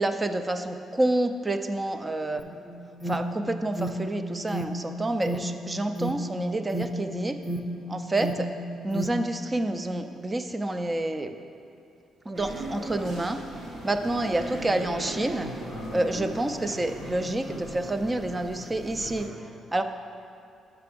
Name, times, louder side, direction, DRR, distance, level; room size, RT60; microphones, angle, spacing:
voice 1, 0.0-2.4 3.1-7.4 7.9-8.5 8.8-11.3 12.3-13.4 13.8-15.5 15.9-19.3 19.7-19.8, right 1 dB, 20° right, 8 dB, 0.4 m, -28 dB
Alarm, 2.4-9.1, right 1 dB, 10° left, 0.7 m, -33 dB
sound 1, 12.3-19.3, right 1 dB, 70° right, 1.5 m, -38 dB
5.9 x 5.8 x 5.2 m, 2.6 s
cardioid pair, 85°, 0 cm